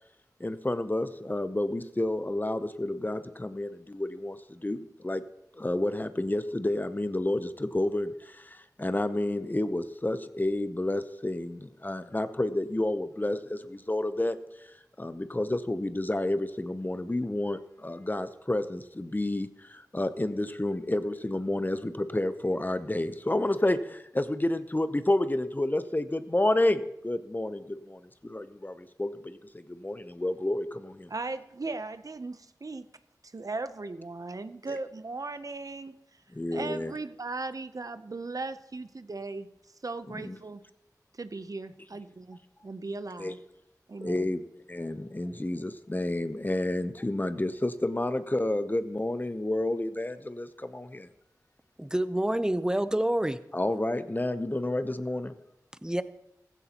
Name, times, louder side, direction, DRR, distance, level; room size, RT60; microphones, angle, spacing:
voice 1, 0.4-4.8 5.0-5.2 5.6-8.4 8.8-14.4 15.0-29.4 29.7-31.1 36.3-36.9 40.1-40.4 43.2-43.4 44.0-44.4 44.7-51.1 53.5-55.4, left 1 dB, 25° left, 11 dB, 0.7 m, -30 dB
voice 2, 31.1-32.9 33.3-35.9 36.5-39.5 39.8-40.6 41.2-43.4 43.9-44.3, right 3 dB, 55° right, 11 dB, 0.7 m, -37 dB
voice 3, 51.8-53.4 55.8-56.0, right 1 dB, 10° right, 13 dB, 0.7 m, -27 dB
15.5 x 15.5 x 2.9 m, 0.84 s
wide cardioid pair, 55°, 7 cm